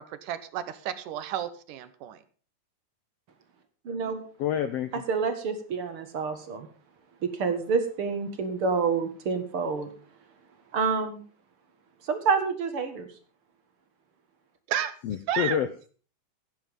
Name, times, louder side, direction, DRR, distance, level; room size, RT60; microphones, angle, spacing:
voice 1, 0.0-2.2 14.7-15.6, right 11 dB, 75° right, 12 dB, 2.6 m, -32 dB
voice 2, 3.8-4.2 4.9-6.7 7.2-9.9 10.7-11.2 12.0-13.1, right 5 dB, 50° right, 7 dB, 2.3 m, -28 dB
voice 3, 4.4-4.9 15.0-15.9, left 9 dB, 75° left, 11 dB, 1.4 m, -28 dB
15.5 x 9.7 x 5.4 m, 0.40 s
omnidirectional pair, 3.8 m